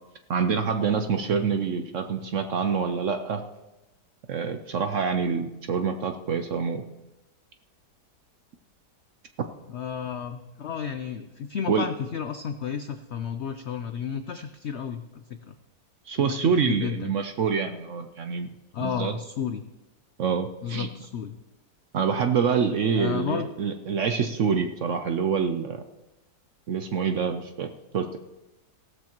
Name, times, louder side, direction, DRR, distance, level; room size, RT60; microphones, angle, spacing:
voice 1, 0.3-3.4 4.3-6.8 11.7-11.9 16.1-18.5 18.8-19.1 20.2-20.9 21.9-25.8 26.7-28.2, right 6 dB, 65° right, 7 dB, 0.8 m, -26 dB
voice 2, 9.7-15.5 16.3-17.1 18.7-19.6 20.6-21.4 22.9-23.5, left 7 dB, 85° left, 9 dB, 0.6 m, -32 dB
16.0 x 13.0 x 3.0 m, 1.0 s
omnidirectional pair, 1.9 m